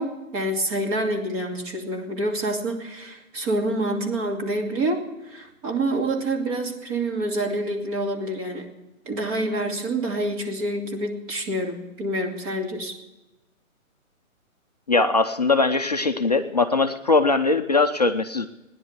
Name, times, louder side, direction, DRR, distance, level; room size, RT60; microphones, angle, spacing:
voice 1, 0.0-8.7 9.1-12.9, right 1 dB, 25° right, 1 dB, 2.6 m, -27 dB
voice 2, 14.9-18.5, left 3 dB, 30° left, 6 dB, 0.5 m, -21 dB
17.0 x 10.5 x 8.0 m, 1.0 s
hypercardioid pair, 150°, 42 cm